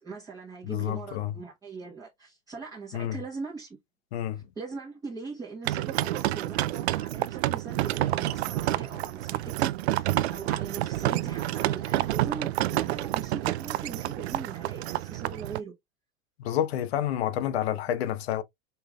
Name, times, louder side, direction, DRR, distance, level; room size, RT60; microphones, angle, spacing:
voice 1, 0.0-3.8 4.3-15.7, right 4 dB, 10° right, 1.2 m, -41 dB
voice 2, 0.6-1.3 2.9-3.2 4.1-4.4 16.4-18.4, left 11 dB, 80° left, 1.0 m, -29 dB
sound 1, 5.7-15.6, right 15 dB, 85° right, 0.5 m, -29 dB
5.6 x 3.3 x 2.3 m
supercardioid pair, 155°, 32 cm